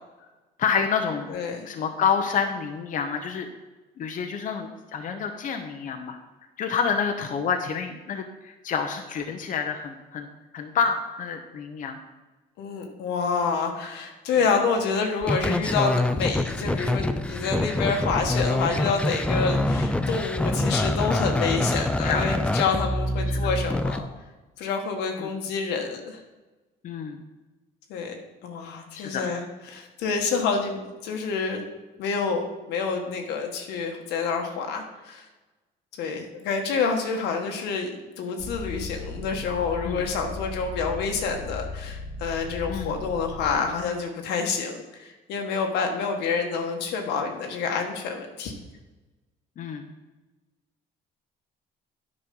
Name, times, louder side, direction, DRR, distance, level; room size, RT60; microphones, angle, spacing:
voice 1, 0.6-1.3 1.6-3.5 4.0-6.2 6.6-10.3 10.5-12.0 22.0-22.2 23.3-23.4 25.2-25.3 26.8-27.2 28.9-29.3 39.8-40.0 42.7-42.9 49.6-49.9, left 6 dB, 50° left, 5 dB, 0.8 m, -28 dB
voice 2, 1.3-1.7 12.6-24.1 24.6-26.2 27.9-29.4 29.7-31.6 32.0-35.2 36.0-48.5, left 5 dB, 85° left, 3 dB, 1.5 m, -28 dB
sound 1, 15.2-24.0, left 1 dB, 5° left, 0.5 m, -25 dB
sound 2, 38.4-43.5, left 2 dB, 35° right, 1.6 m, -37 dB
9.8 x 5.3 x 5.4 m, 1.2 s
cardioid pair, 110°, 17 cm